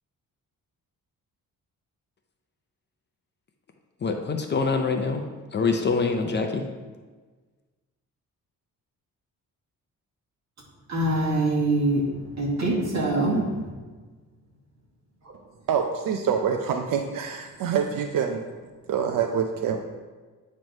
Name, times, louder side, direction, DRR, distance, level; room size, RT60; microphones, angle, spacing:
voice 1, 4.0-5.2 5.5-6.6, left 4 dB, 30° left, 4 dB, 0.5 m, -25 dB
voice 2, 10.9-13.7, right 2 dB, 50° right, -3 dB, 1.9 m, -24 dB
voice 3, 15.7-18.5 18.9-19.9, right 7 dB, 75° right, 4 dB, 0.6 m, -26 dB
9.1 x 3.1 x 5.2 m, 1.4 s
wide cardioid pair, 165°, 34 cm